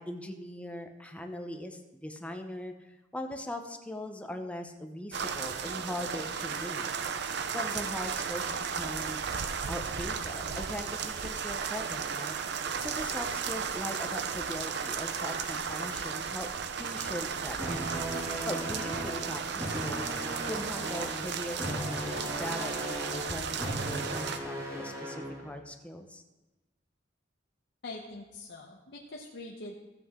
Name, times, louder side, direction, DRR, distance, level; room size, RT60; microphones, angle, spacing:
voice 1, 0.0-6.9 7.5-9.3 9.7-12.4 12.8-16.5 16.8-17.9 18.4-20.1 20.5-26.2, left 1 dB, 5° left, 5 dB, 0.7 m, -40 dB
sound 1, 5.1-24.4, right 6 dB, 60° right, 0.6 m, -35 dB
sound 2, 17.6-25.6, equal, 15° right, 2.3 m, -37 dB
voice 2, 27.8-29.8, left 2 dB, 65° left, -2 dB, 0.9 m, -43 dB
14.0 x 7.7 x 3.7 m, 1.1 s
head